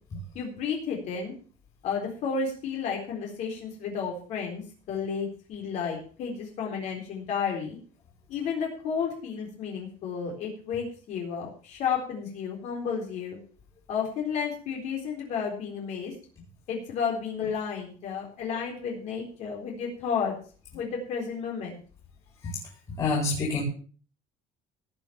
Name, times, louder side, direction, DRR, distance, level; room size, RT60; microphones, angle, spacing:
voice 1, 0.3-1.3 1.8-4.6 4.9-7.8 8.3-13.4 13.9-16.1 16.7-20.3 20.7-21.8, left 6 dB, 55° left, 0 dB, 4.0 m, -32 dB
voice 2, 23.0-23.6, left 3 dB, 25° left, -4 dB, 4.5 m, -26 dB
17.5 x 6.1 x 7.0 m, 0.42 s
cardioid pair, 170°, 14 cm